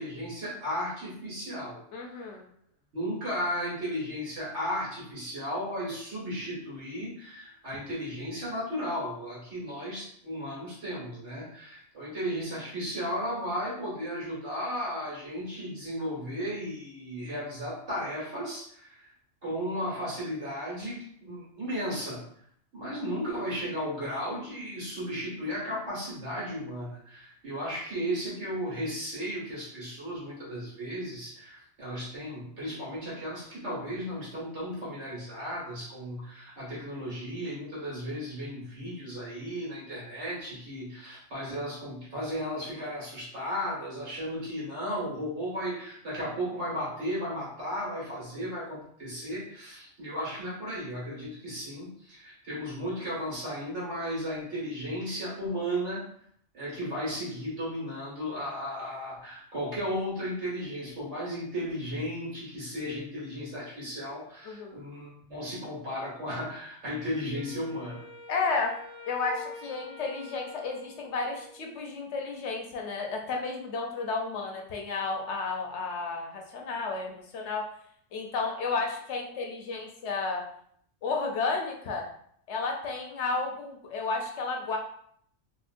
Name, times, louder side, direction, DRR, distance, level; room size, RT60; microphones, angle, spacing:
voice 1, 0.0-2.4 2.9-19.1 19.4-22.2 22.7-56.1 56.5-68.0, equal, 70° right, -7 dB, 1.9 m, -35 dB
voice 2, 1.9-2.4 64.4-64.8 68.3-68.7 69.1-77.6 78.1-80.4 81.0-82.1 82.5-84.8, left 4 dB, 70° left, 1 dB, 0.9 m, -32 dB
Wind instrument woodwind instrument, 67.3-71.7, left 3 dB, 40° left, 0.7 m, -46 dB
3.7 x 2.3 x 2.5 m, 0.64 s
omnidirectional pair, 1.2 m